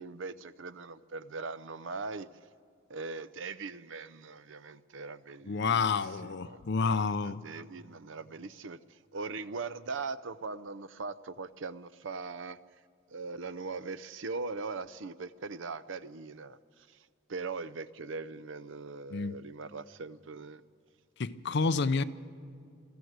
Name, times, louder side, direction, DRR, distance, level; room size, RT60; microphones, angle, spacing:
voice 1, 0.0-2.3 2.9-5.9 6.2-8.8 9.1-12.6 13.1-16.6 17.3-20.6, right 4 dB, 65° right, 0.6 m, -40 dB
voice 2, 5.4-7.4 19.1-19.4 21.2-22.0, left 4 dB, 60° left, 0.6 m, -29 dB
22.0 x 15.0 x 8.1 m
head